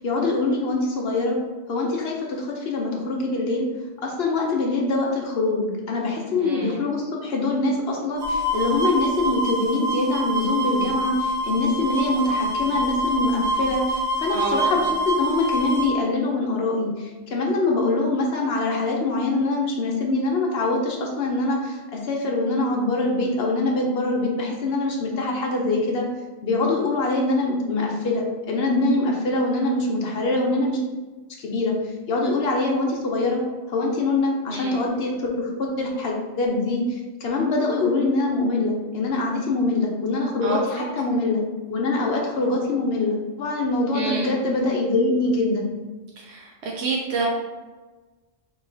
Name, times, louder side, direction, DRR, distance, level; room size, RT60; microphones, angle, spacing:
voice 1, 0.0-1.4 1.7-3.7 4.0-26.1 26.4-30.8 31.4-31.7 32.1-33.4 33.7-41.4 41.7-45.7, left 2 dB, 60° left, -1 dB, 0.9 m, -24 dB
voice 2, 6.3-6.8 14.3-14.7 34.5-34.7 40.4-40.9 43.9-44.3 46.2-47.3, right 4 dB, 65° right, -3 dB, 0.8 m, -28 dB
sound 1, 8.2-15.9, right 1 dB, 40° right, 0.3 m, -26 dB
3.0 x 2.8 x 3.8 m, 1.2 s
omnidirectional pair, 1.3 m